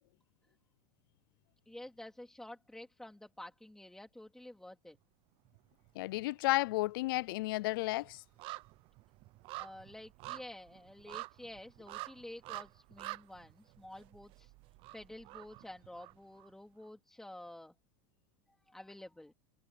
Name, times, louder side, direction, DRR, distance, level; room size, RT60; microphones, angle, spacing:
voice 1, 1.7-5.0 9.5-14.5 14.9-17.7 18.7-19.3, left 1 dB, 5° left, 2.6 m, -50 dB
sound 1, 5.5-6.2 6.5-16.5 16.8-16.9, right 21 dB, 50° right, 0.7 m, -48 dB
voice 2, 6.0-8.2, left 20 dB, 75° left, 0.4 m, -32 dB
supercardioid pair, 130°, 12 cm